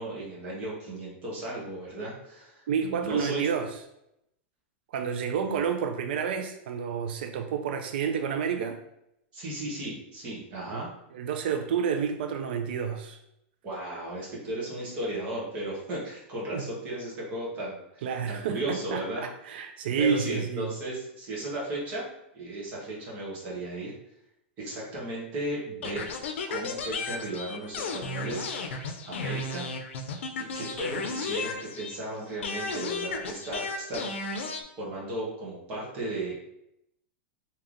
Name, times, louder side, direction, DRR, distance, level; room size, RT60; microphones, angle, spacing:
voice 1, 0.0-3.5 5.4-5.6 9.3-10.9 13.6-19.2 20.0-22.0 22.3-23.9 24.6-26.1 26.5-29.7 30.3-34.1 34.8-36.3, right 1 dB, 25° right, -5 dB, 1.1 m, -35 dB
voice 2, 2.7-3.8 4.9-8.8 10.7-10.8 11.1-13.2 16.5-16.7 18.0-20.7, right 7 dB, 55° right, 5 dB, 0.3 m, -29 dB
sound 1, 25.8-32.1 32.4-34.6, left 3 dB, 90° left, 0.5 m, -34 dB
3.2 x 2.8 x 3.8 m, 0.81 s
supercardioid pair, 180°, 6 cm